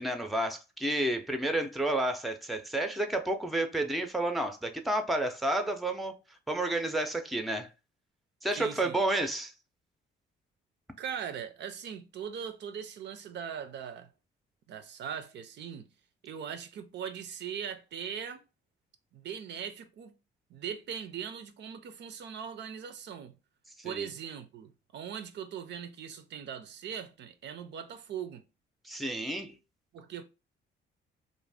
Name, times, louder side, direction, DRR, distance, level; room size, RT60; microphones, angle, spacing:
voice 1, 0.0-6.1 6.5-7.7 8.4-9.5 23.8-24.1 28.8-29.6, right 1 dB, ahead, 0.4 m, -30 dB
voice 2, 8.5-9.0 11.0-14.1 14.7-15.9 16.2-18.4 19.1-20.1 20.5-23.3 23.8-28.4 29.9-30.2, right 8 dB, 65° right, 0.4 m, -40 dB
2.5 x 2.1 x 3.3 m
cardioid pair, 90°, 20 cm